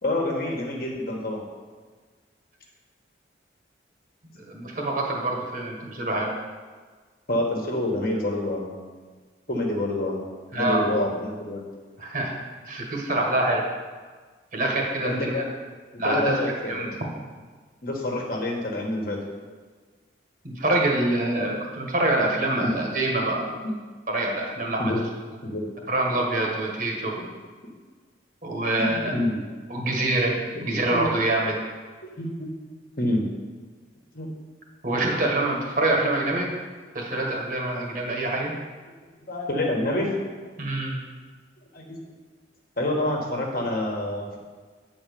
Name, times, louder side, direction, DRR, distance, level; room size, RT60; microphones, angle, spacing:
voice 1, 0.0-1.4 7.3-8.7 9.5-10.2 10.5-11.6 15.0-15.4 16.0-16.9 17.8-19.2 24.8-25.0 25.4-25.6 28.8-29.4 30.7-31.1 32.2-32.5 33.0-33.2 34.1-34.3 39.3-40.1 41.7-42.0 42.8-44.4, left 1 dB, 50° left, -1 dB, 1.5 m, -27 dB
voice 2, 4.3-6.3 10.5-10.9 12.0-13.6 14.5-15.4 16.0-16.9 20.4-23.5 24.1-24.9 25.9-27.1 28.4-29.1 29.7-31.6 34.8-36.5 36.9-38.5 40.6-41.0, right 2 dB, 45° right, 0 dB, 1.4 m, -25 dB
9.0 x 4.2 x 6.9 m, 1.5 s
head